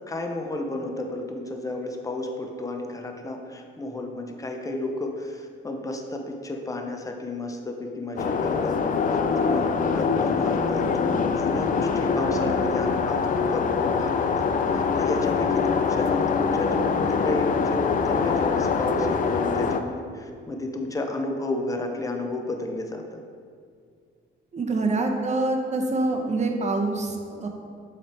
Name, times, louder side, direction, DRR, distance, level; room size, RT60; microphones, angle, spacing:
voice 1, 0.1-8.8 9.4-14.5 14.7-23.2, left 2 dB, 15° left, 3 dB, 0.7 m, -32 dB
sound 1, 8.2-19.8, left 5 dB, 45° left, 0.4 m, -24 dB
voice 2, 24.5-27.5, right 2 dB, 35° right, 2 dB, 0.8 m, -25 dB
7.4 x 3.3 x 4.4 m, 2.2 s
cardioid pair, 90°, 20 cm